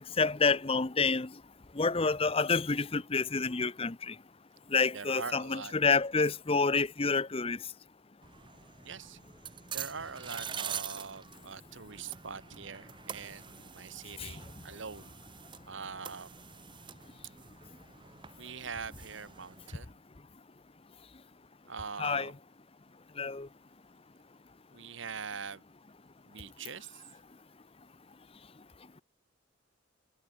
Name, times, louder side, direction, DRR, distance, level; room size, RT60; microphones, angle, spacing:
voice 1, 0.2-1.3 1.8-4.1 4.7-7.6 14.2-14.3 22.0-22.3 23.2-23.5, left 4 dB, 30° left, 0.8 m, -28 dB
voice 2, 4.9-5.7 8.8-9.2 9.7-15.1 15.7-16.3 18.4-20.0 21.7-22.4 24.7-25.6 26.3-27.0, right 5 dB, 65° right, 1.4 m, -43 dB
sound 1, 8.2-19.8, right 7 dB, 25° right, 0.7 m, -45 dB
head